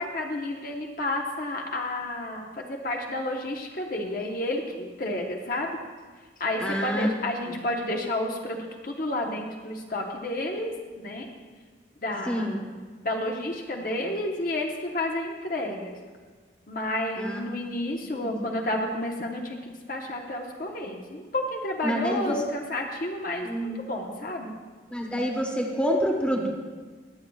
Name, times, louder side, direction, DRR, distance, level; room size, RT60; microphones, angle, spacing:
voice 1, 0.0-5.7 6.4-10.7 11.0-11.3 12.0-12.5 13.0-16.0 16.7-24.5, left 1 dB, 50° left, 1 dB, 1.0 m, -31 dB
voice 2, 6.6-7.1 7.4-7.6 12.3-12.6 17.2-17.4 18.1-18.5 21.8-22.4 23.4-23.8 24.9-26.5, equal, 5° left, 0 dB, 1.2 m, -27 dB
22.0 x 8.5 x 2.4 m, 1.4 s
head